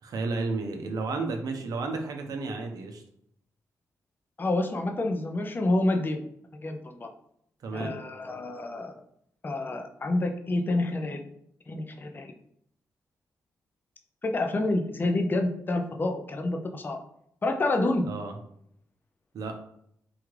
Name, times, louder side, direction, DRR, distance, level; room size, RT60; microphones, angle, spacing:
voice 1, 0.0-3.0 7.6-8.0 18.0-18.4 19.3-19.5, right 3 dB, 75° right, 4 dB, 0.6 m, -32 dB
voice 2, 4.4-6.2 6.6-7.1 7.7-8.9 9.4-11.2 11.7-12.3 14.2-17.0 17.4-18.1, left 2 dB, 30° left, 4 dB, 0.5 m, -28 dB
3.5 x 2.3 x 3.2 m, 0.70 s
cardioid pair, 60°, 6 cm